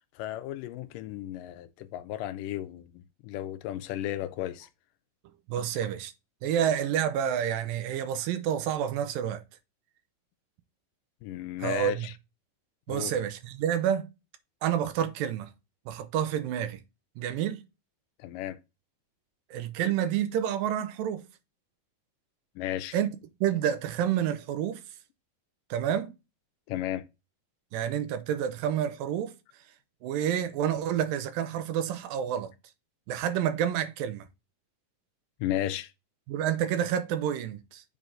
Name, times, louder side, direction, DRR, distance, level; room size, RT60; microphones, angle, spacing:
voice 1, 0.2-4.7 5.6-5.7 11.2-12.1 12.9-13.2 18.2-18.6 22.6-23.0 26.7-27.1 35.4-35.9, left 13 dB, 80° left, 2.1 m, -34 dB
voice 2, 5.5-6.1 6.4-9.4 11.6-12.1 12.9-14.1 14.6-15.5 15.9-16.8 17.2-17.6 19.5-21.2 22.9-23.1 23.4-24.8 25.7-26.1 27.7-29.3 30.0-32.5 33.1-34.3 36.3-37.8, right 9 dB, 90° right, 2.5 m, -29 dB
7.5 x 4.0 x 3.8 m
omnidirectional pair, 3.9 m